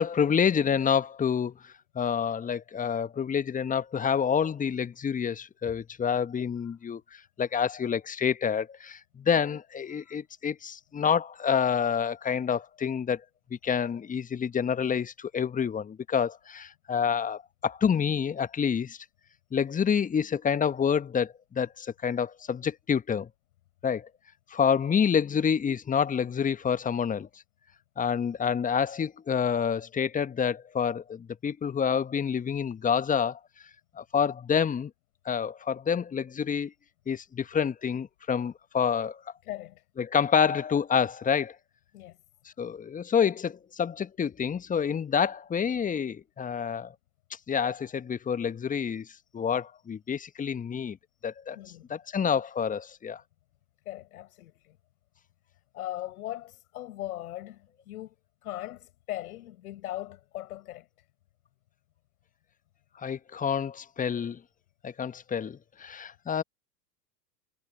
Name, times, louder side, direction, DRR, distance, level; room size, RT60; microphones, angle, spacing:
voice 1, 0.0-13.2 13.5-19.0 19.5-23.3 23.8-24.1 24.5-27.3 28.0-33.4 34.0-34.9 35.2-36.7 37.1-39.2 40.0-41.5 42.6-46.9 47.5-49.1 49.3-51.0 51.2-51.6 51.9-53.2 63.0-64.4 64.8-66.4, left 7 dB, 15° left, 1.4 m, -28 dB
voice 2, 39.4-39.8 41.9-42.2 51.6-51.8 53.9-54.8 55.7-58.1 58.4-60.9, left 14 dB, 60° left, 5.8 m, -39 dB
figure-of-eight pair, 85°, 49 cm